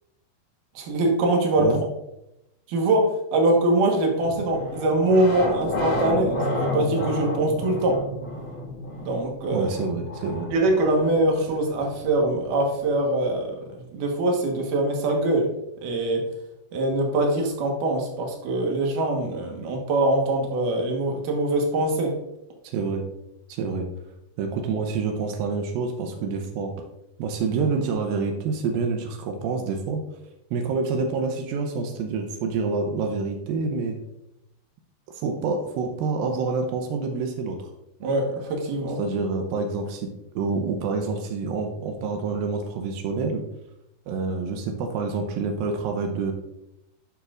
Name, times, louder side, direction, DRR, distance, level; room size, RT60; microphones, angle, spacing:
voice 1, 0.8-1.8 2.7-8.0 9.0-9.7 10.5-13.6 13.9-15.5 15.8-16.2 16.7-22.2 38.0-39.0, right 2 dB, 65° right, 1 dB, 2.4 m, -23 dB
sound 1, 4.2-13.0, left 1 dB, 70° left, 0.8 m, -31 dB
voice 2, 9.5-10.5 22.6-23.1 23.5-23.9 24.4-26.7 27.2-30.0 30.5-34.0 35.1-37.7 39.0-43.4 44.1-46.3, right 4 dB, 85° right, 3 dB, 2.1 m, -27 dB
11.5 x 5.7 x 2.5 m, 0.87 s
omnidirectional pair, 5.1 m